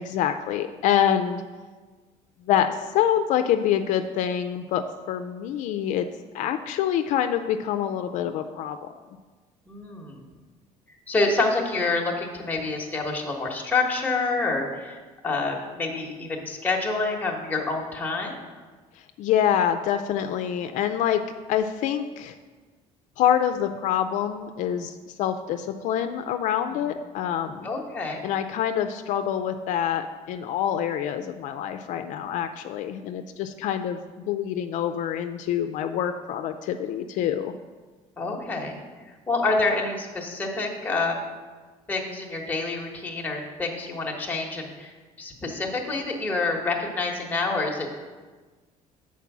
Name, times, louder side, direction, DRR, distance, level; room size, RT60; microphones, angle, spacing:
voice 1, 0.0-1.4 2.5-6.1 6.3-8.8 19.2-21.2 21.5-22.3 23.2-27.7 28.2-37.5, left 9 dB, 70° left, 7 dB, 0.4 m, -26 dB
voice 2, 9.7-10.3 11.1-18.4 26.7-26.8 27.6-28.2 38.2-38.8 39.1-41.2 41.9-47.9, left 3 dB, 10° left, -1 dB, 1.1 m, -27 dB
8.2 x 4.5 x 6.0 m, 1.4 s
cardioid pair, 150°, 14 cm